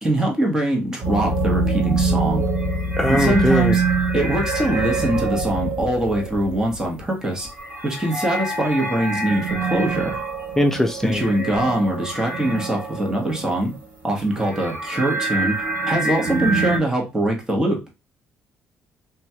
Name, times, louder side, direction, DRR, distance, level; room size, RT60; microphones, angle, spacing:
voice 1, 0.0-2.4 3.1-3.8 4.1-7.5 7.8-10.2 11.0-13.7 14.0-15.5 15.9-17.8, right 1 dB, 15° right, 1.0 m, -23 dB
sound 1, 1.0-13.8 14.1-16.8, right 3 dB, 40° right, 1.6 m, -25 dB
voice 2, 3.0-3.7 10.6-11.2, left 1 dB, 10° left, 0.3 m, -20 dB
3.0 x 2.3 x 2.7 m
cardioid pair, 115°, 4 cm